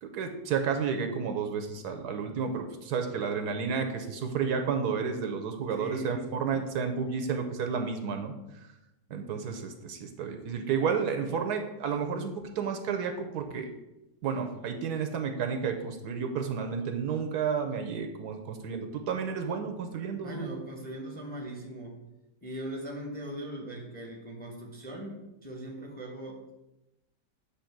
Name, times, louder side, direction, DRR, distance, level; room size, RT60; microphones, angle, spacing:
voice 1, 0.0-8.3 9.1-13.7 14.2-20.6, right 6 dB, 70° right, 5 dB, 1.2 m, -31 dB
voice 2, 5.7-6.2 20.2-22.0 22.4-26.5, right 1 dB, 5° left, 0 dB, 1.0 m, -40 dB
8.4 x 3.0 x 5.9 m, 0.95 s
omnidirectional pair, 1.8 m